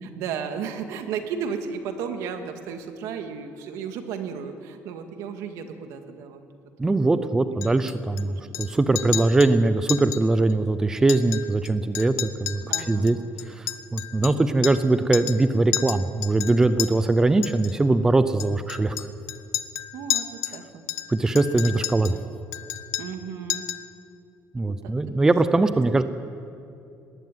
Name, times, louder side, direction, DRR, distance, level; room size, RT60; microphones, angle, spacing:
voice 1, 0.0-6.4 7.2-7.7 8.2-8.4 12.7-13.2 14.3-14.4 19.9-20.8 23.0-23.7 24.6-24.9, right 6 dB, 75° right, 6 dB, 2.0 m, -34 dB
voice 2, 6.8-13.2 13.4-19.1 21.1-22.2 24.5-26.0, right 2 dB, 10° right, 11 dB, 0.5 m, -21 dB
Chink clink, 7.6-8.2 8.5-8.7 8.9-9.5 9.9-10.2 10.5-10.6 11.0-11.7 11.9-14.9 15.1-15.4 15.7-16.9 17.4-17.7 18.4-20.6 20.9-22.2 22.5-23.2 23.5-23.9, left 13 dB, 70° left, 0.9 m, -31 dB
19.5 x 16.0 x 9.3 m, 2.5 s
cardioid pair, 175°, 6 cm